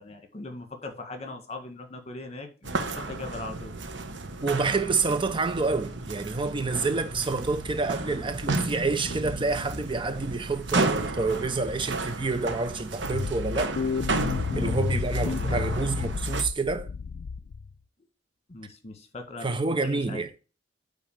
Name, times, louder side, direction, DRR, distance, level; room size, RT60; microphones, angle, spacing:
voice 1, 0.0-3.7 14.6-14.7 15.2-15.9 18.5-20.4, left 2 dB, 35° left, 1.8 m, -40 dB
sound 1, 2.6-16.4, right 3 dB, 70° right, 1.2 m, -33 dB
voice 2, 4.4-13.8 14.6-16.9 19.4-20.3, right 3 dB, 25° right, 0.6 m, -28 dB
sound 2, 13.0-17.7, left 5 dB, 55° left, 0.3 m, -30 dB
8.7 x 3.8 x 6.5 m
head